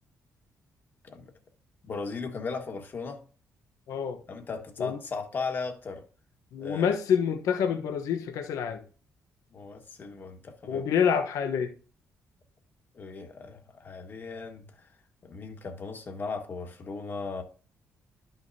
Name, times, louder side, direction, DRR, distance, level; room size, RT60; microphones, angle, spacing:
voice 1, 1.8-3.2 4.3-6.0 6.6-7.0 9.5-10.8 12.9-14.9 15.2-17.4, left 4 dB, 40° left, 1.6 m, -37 dB
voice 2, 6.5-8.8 10.7-11.7, left 7 dB, 90° left, 1.0 m, -27 dB
12.0 x 5.8 x 2.8 m
cardioid pair, 130°, 6 cm